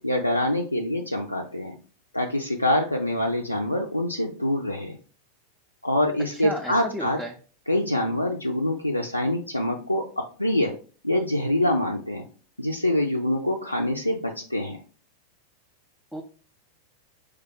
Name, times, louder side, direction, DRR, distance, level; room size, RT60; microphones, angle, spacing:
voice 1, 0.0-1.7 2.1-5.0 5.8-7.2 7.7-10.7 11.0-12.2 12.6-14.8, left 1 dB, 85° left, 1 dB, 0.3 m, -25 dB
voice 2, 6.3-7.4 16.1-16.2, equal, ahead, 0 dB, 0.4 m, -33 dB
3.2 x 2.2 x 3.6 m, 0.40 s
figure-of-eight pair, 90°, 0 cm